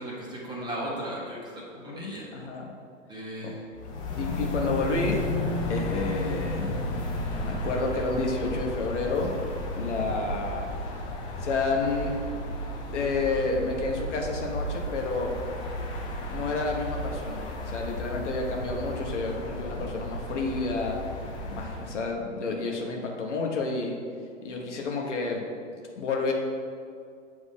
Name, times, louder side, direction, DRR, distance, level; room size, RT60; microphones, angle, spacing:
voice 1, 0.0-2.3 3.1-3.6, right 1 dB, 10° right, -4 dB, 1.2 m, -36 dB
voice 2, 1.7-2.7 3.4-3.5 4.2-5.2 5.7-6.8 7.4-9.3 9.8-10.7 11.4-12.1 12.9-15.3 16.3-21.0 21.5-24.0 24.4-25.5 26.0-26.3, left 3 dB, 65° left, 1 dB, 1.1 m, -30 dB
sound 1, 3.8-22.1, left 1 dB, 15° left, 0.4 m, -33 dB
7.5 x 3.0 x 5.4 m, 2.3 s
figure-of-eight pair, 110°, 38 cm